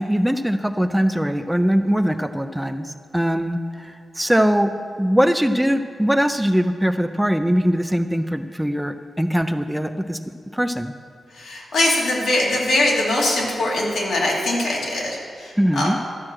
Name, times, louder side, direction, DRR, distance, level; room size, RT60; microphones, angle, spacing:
voice 1, 0.0-4.7 5.0-10.2 10.5-10.9 15.6-16.0, equal, 5° right, 9 dB, 0.3 m, -21 dB
voice 2, 11.3-15.9, left 1 dB, 75° left, -3 dB, 2.5 m, -22 dB
12.0 x 6.1 x 7.6 m, 2.4 s
wide cardioid pair, 150°, 0 cm